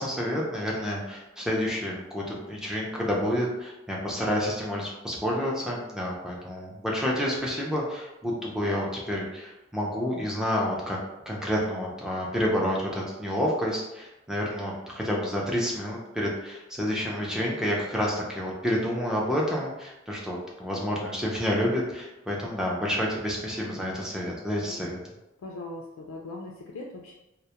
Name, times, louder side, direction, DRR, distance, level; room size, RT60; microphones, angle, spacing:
voice 1, 0.0-11.0 11.3-25.0, equal, 5° right, -3 dB, 0.4 m, -29 dB
voice 2, 25.4-27.1, left 2 dB, 85° left, -1 dB, 0.3 m, -40 dB
2.2 x 2.0 x 2.8 m, 0.96 s
head